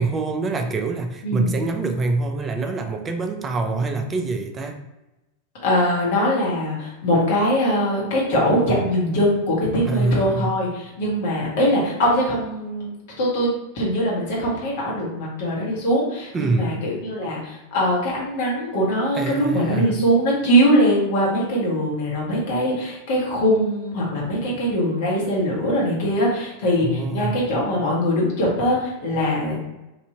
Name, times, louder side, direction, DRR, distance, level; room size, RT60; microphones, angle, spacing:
voice 1, 0.0-4.8 9.9-10.6 16.3-16.8 19.2-20.0 26.8-27.4, right 3 dB, 20° right, 5 dB, 0.4 m, -25 dB
voice 2, 5.6-12.9 13.2-29.6, equal, 50° left, -4 dB, 1.1 m, -22 dB
3.3 x 2.5 x 2.8 m, 1.0 s
figure-of-eight pair, 90°, 0 cm